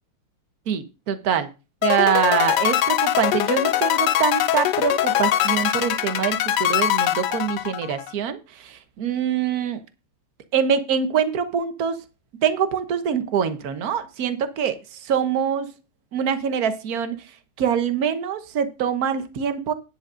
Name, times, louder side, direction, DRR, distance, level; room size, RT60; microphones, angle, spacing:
voice 1, 0.7-1.5 1.8-9.8 10.5-12.0 12.4-15.7 16.1-17.2 17.6-19.7, right 8 dB, 50° right, 10 dB, 1.4 m, -24 dB
sound 1, 1.8-8.1, left 12 dB, 70° left, 1.0 m, -22 dB
10.5 x 5.3 x 6.3 m, 0.29 s
omnidirectional pair, 2.4 m